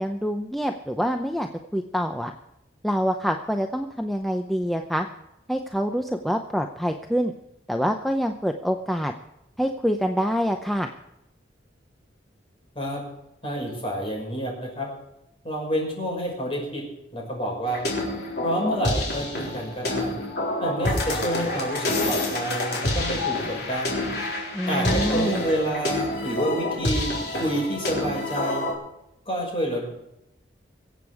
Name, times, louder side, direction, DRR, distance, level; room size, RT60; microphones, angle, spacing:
voice 1, 0.0-2.3 2.8-5.1 5.5-7.3 7.7-9.1 9.6-10.9 24.5-25.4, equal, ahead, 4 dB, 0.7 m, -26 dB
voice 2, 13.4-14.9 15.4-16.8 17.1-17.8 18.4-20.2 20.6-24.0 24.7-28.6 29.3-29.9, equal, 30° left, -1 dB, 5.9 m, -28 dB
sound 1, 17.7-28.7, left 2 dB, 60° left, 4.1 m, -28 dB
23.5 x 8.1 x 4.9 m, 0.86 s
head